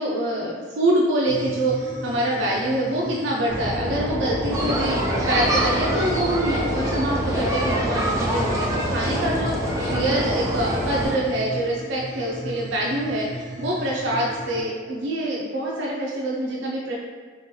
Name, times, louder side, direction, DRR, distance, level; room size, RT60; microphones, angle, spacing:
voice 1, 0.0-5.0 5.3-17.0, right 1 dB, 80° right, -4 dB, 0.4 m, -25 dB
sound 1, 1.3-14.6, equal, 60° right, 0.9 m, -38 dB
sound 2, 3.5-11.1, equal, 30° left, 1.2 m, -28 dB
sound 3, 4.5-11.2, right 1 dB, 15° right, 0.5 m, -27 dB
3.4 x 2.8 x 3.0 m, 1.5 s
head